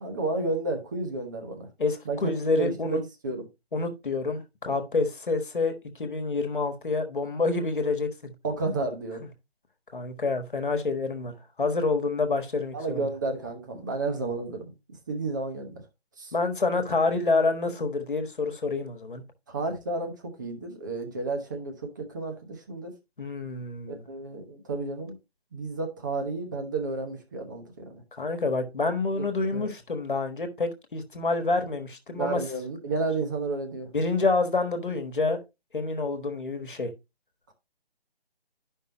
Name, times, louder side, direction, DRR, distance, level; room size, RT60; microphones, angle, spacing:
voice 1, 0.0-1.7 2.0-3.5 8.4-9.2 12.7-14.7 15.1-15.8 16.2-16.3 19.5-22.9 23.9-25.2 25.5-28.0 29.1-29.2 29.5-29.7 32.1-33.9, right 3 dB, 20° right, 1.0 m, -32 dB
voice 2, 1.8-3.0 3.7-5.7 6.0-8.3 9.9-11.3 11.6-13.1 16.3-19.2 23.2-24.0 28.1-32.4 33.9-35.4 35.7-36.9, left 3 dB, 55° left, 1.5 m, -27 dB
11.5 x 5.5 x 2.9 m
figure-of-eight pair, 150°, 31 cm